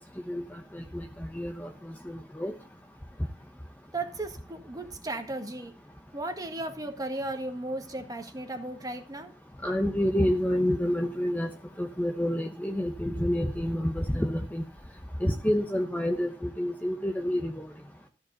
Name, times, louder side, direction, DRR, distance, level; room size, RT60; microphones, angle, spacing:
voice 1, 1.3-1.7 2.1-2.5 9.6-11.5 11.8-14.6 15.2-17.6, equal, 10° left, 4 dB, 0.9 m, -28 dB
voice 2, 3.9-5.7 6.1-9.3, right 2 dB, 20° right, 5 dB, 1.6 m, -35 dB
14.0 x 4.9 x 8.0 m, 0.36 s
head